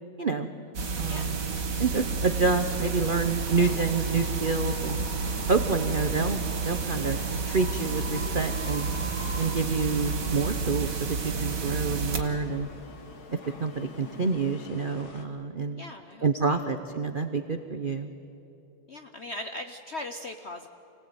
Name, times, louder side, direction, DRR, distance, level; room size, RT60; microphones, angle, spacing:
sound 1, 0.7-12.2, right 4 dB, 45° right, 1.9 m, -30 dB
voice 1, 1.0-1.4 1.8-5.0 5.5-7.2 7.5-8.9 9.4-12.7 13.6-15.8 16.2-18.1, right 4 dB, 80° right, 8 dB, 0.4 m, -28 dB
Wind, 2.4-10.5, left 2 dB, 35° left, 1.5 m, -46 dB
sound 2, 2.7-15.2, left 4 dB, 80° left, 2.6 m, -48 dB
voice 2, 15.7-16.6 18.9-20.7, left 1 dB, 60° left, 6 dB, 0.6 m, -39 dB
25.5 x 17.5 x 9.3 m, 3.0 s
omnidirectional pair, 2.2 m